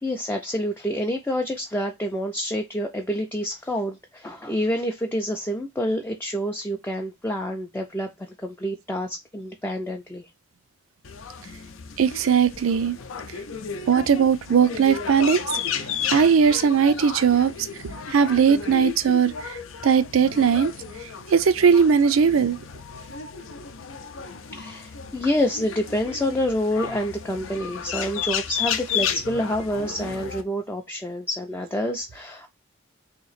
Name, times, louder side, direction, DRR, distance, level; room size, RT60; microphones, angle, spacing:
voice 1, 0.0-10.3 18.1-18.2 24.5-32.5, equal, 10° left, 0.4 m, -28 dB
sound 1, 11.0-30.4, left 7 dB, 75° left, 0.5 m, -33 dB
voice 2, 12.0-13.0 13.9-15.4 15.7-15.8 16.1-17.7 18.1-19.6 19.8-20.7 21.3-22.6, right 6 dB, 80° right, 0.4 m, -19 dB
3.0 x 2.8 x 4.0 m
head